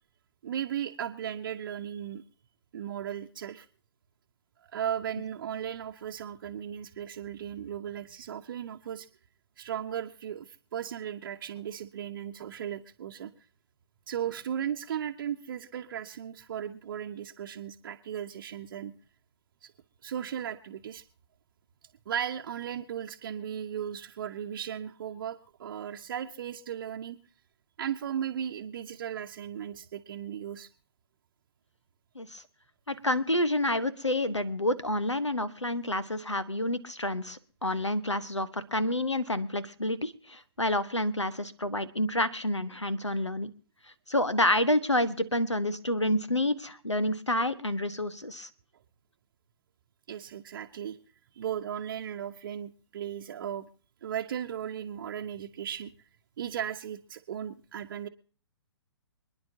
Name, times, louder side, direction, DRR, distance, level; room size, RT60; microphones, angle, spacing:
voice 1, 0.4-2.2 2.7-3.7 4.7-9.1 9.6-13.3 14.1-18.9 19.6-19.7 20.0-21.0 22.1-27.2 27.8-30.7 50.1-51.0 51.3-53.7 54.0-55.9 56.4-58.1, right 9 dB, 45° right, 2 dB, 0.9 m, -36 dB
voice 2, 32.9-43.5 44.1-48.5, left 1 dB, 85° left, 15 dB, 1.2 m, -29 dB
27.0 x 10.5 x 2.8 m, 0.42 s
figure-of-eight pair, 120°, 15 cm